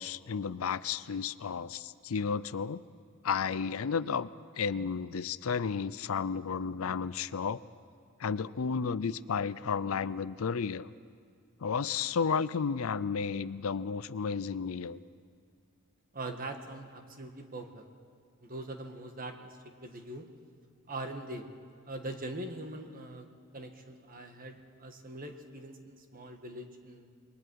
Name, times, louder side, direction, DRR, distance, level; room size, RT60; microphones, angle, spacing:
voice 1, 0.0-2.8 3.2-4.3 4.6-7.6 8.2-10.9 11.6-15.0, left 6 dB, 85° left, 17 dB, 0.5 m, -32 dB
voice 2, 16.1-17.8 18.4-20.3 20.9-21.5 21.9-23.3 23.5-27.1, right 2 dB, 45° right, 5 dB, 1.6 m, -42 dB
27.5 x 21.5 x 4.7 m, 2.2 s
head